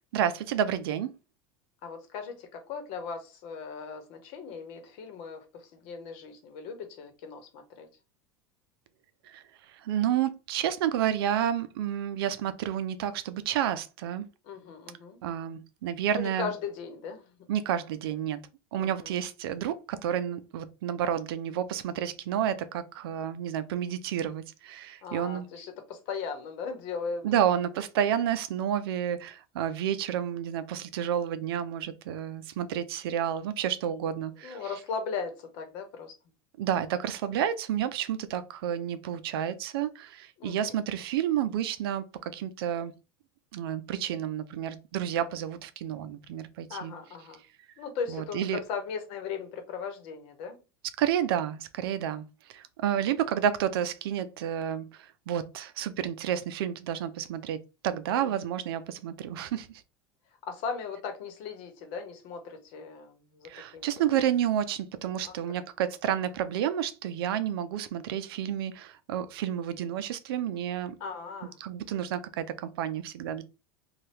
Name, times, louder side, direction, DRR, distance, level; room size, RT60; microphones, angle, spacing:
voice 1, 0.1-1.1 9.3-9.4 9.8-14.2 15.2-16.5 17.5-18.4 18.7-25.5 27.2-34.6 36.6-42.9 43.5-47.0 48.1-48.6 51.0-52.3 52.5-54.9 55.3-59.7 63.5-70.9 71.6-73.4, right 10 dB, 80° right, 0.4 m, -30 dB
voice 2, 1.8-5.4 5.7-7.9 14.5-15.2 16.1-17.2 18.8-19.1 25.0-27.4 34.4-36.1 40.4-40.7 46.7-47.4 47.8-50.6 58.2-58.3 60.5-63.9 65.2-65.3 71.0-71.6, left 5 dB, 60° left, 1.0 m, -38 dB
2.7 x 2.3 x 3.2 m
supercardioid pair, 110°, 12 cm